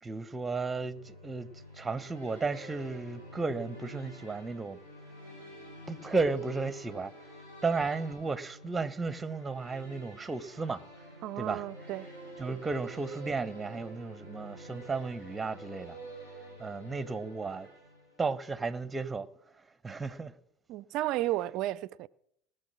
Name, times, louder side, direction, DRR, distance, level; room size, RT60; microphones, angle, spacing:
voice 1, 0.0-1.5 1.7-4.8 5.9-7.1 7.6-10.8 11.4-11.6 12.4-16.0 16.6-17.7 18.2-19.3 19.8-20.3, right 4 dB, 15° right, 0.9 m, -34 dB
sound 1, 0.7-18.4, right 1 dB, 70° left, 4.9 m, -49 dB
voice 2, 11.2-12.1 20.7-22.1, right 15 dB, 55° right, 0.4 m, -33 dB
20.0 x 6.8 x 6.1 m
figure-of-eight pair, 65°, 0 cm